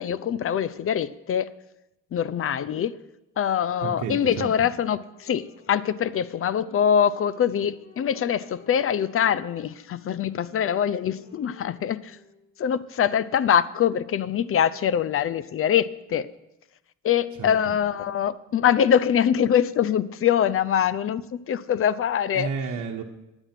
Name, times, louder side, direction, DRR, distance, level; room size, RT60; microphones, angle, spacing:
voice 1, 0.0-1.5 2.1-2.9 3.4-12.2 12.6-16.3 17.0-22.5, left 9 dB, 45° left, 18 dB, 0.6 m, -24 dB
voice 2, 3.8-4.5 17.4-17.5 22.3-23.0, right 5 dB, 80° right, 0 dB, 1.0 m, -31 dB
Wind instrument woodwind instrument, 5.1-12.7, left 4 dB, 75° left, 3.1 m, -54 dB
9.8 x 9.1 x 5.9 m, 0.91 s
cardioid pair, 90°, 30 cm